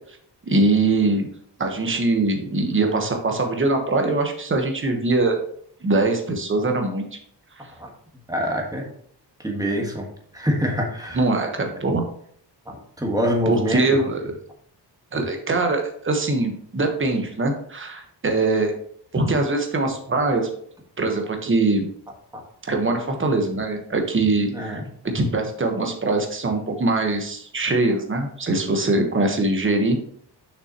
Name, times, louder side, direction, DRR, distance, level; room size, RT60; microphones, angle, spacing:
voice 1, 0.5-1.3 1.6-5.4 5.8-7.2 11.1-12.0 13.5-14.3 15.1-18.7 19.1-20.5 21.0-21.9 22.6-24.8 25.1-30.0, right 2 dB, 30° right, 3 dB, 1.2 m, -22 dB
voice 2, 8.3-8.9 9.4-10.1 10.3-11.2 13.0-13.8 22.3-22.4 24.5-24.9, equal, 10° right, 0 dB, 1.4 m, -25 dB
6.7 x 5.9 x 2.9 m, 0.63 s
wide cardioid pair, 135°, 42 cm